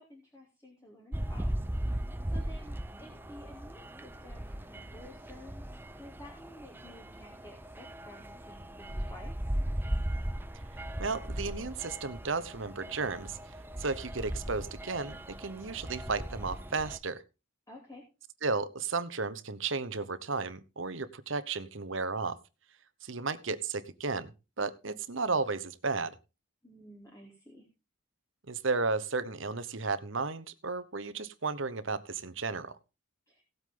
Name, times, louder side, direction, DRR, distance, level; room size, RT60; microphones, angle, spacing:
voice 1, 0.0-1.5 1.8-5.7 5.9-9.3 17.7-18.0 26.6-27.7 33.3-33.4, left 1 dB, 15° left, -2 dB, 3.0 m, -52 dB
sound 1, 1.1-17.0, right 1 dB, 10° right, 0.6 m, -38 dB
voice 2, 11.0-13.4 13.8-17.2 18.4-22.4 23.0-24.3 24.6-26.2 28.5-32.7, right 4 dB, 70° right, 13 dB, 1.1 m, -33 dB
17.5 x 8.0 x 3.8 m, 0.29 s
head